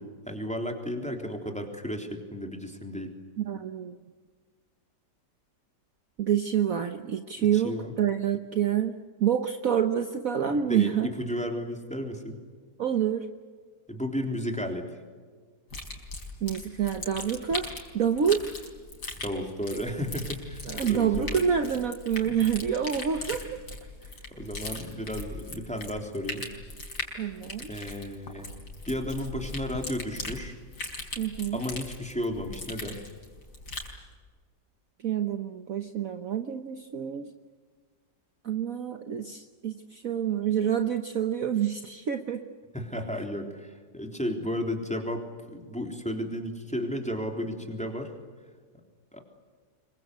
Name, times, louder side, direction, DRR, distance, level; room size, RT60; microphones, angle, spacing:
voice 1, 0.0-3.1 7.4-7.9 10.5-12.4 13.9-15.0 19.2-21.4 22.2-22.5 24.3-26.5 27.7-28.5 28.9-30.5 31.5-33.0 42.7-48.1 49.1-49.2, equal, 5° left, 3 dB, 3.5 m, -33 dB
voice 2, 3.4-3.9 6.2-11.1 12.8-13.3 16.4-18.4 20.7-23.6 27.1-27.7 31.2-31.6 35.0-37.3 38.4-42.4, right 8 dB, 55° right, 7 dB, 1.4 m, -27 dB
sound 1, 15.7-33.9, left 2 dB, 65° left, 5.2 m, -39 dB
26.0 x 23.5 x 8.2 m, 1.5 s
omnidirectional pair, 1.9 m